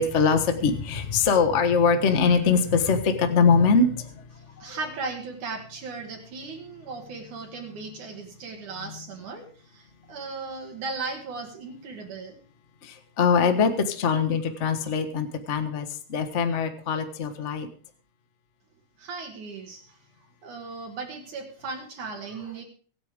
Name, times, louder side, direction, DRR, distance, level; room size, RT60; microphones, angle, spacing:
voice 1, 0.0-4.2 4.6-4.7 12.8-17.7, left 5 dB, 65° left, 7 dB, 0.7 m, -22 dB
voice 2, 4.3-12.4 19.0-20.0 20.4-22.6, right 4 dB, 75° right, 1 dB, 3.5 m, -37 dB
24.0 x 9.0 x 3.6 m, 0.43 s
omnidirectional pair, 3.6 m